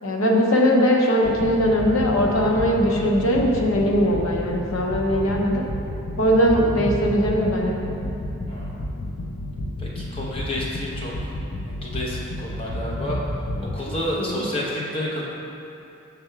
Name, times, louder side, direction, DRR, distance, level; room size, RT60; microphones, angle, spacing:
voice 1, 0.0-5.6 6.2-8.1 14.2-14.4, equal, 85° left, 0 dB, 0.8 m, -20 dB
sound 1, 1.2-13.9, left 1 dB, 45° left, 0.4 m, -31 dB
voice 2, 8.5-8.8 9.8-11.3 11.6-13.2 13.6-15.2, left 1 dB, 25° left, -5 dB, 1.0 m, -30 dB
5.7 x 3.4 x 5.8 m, 2.7 s
head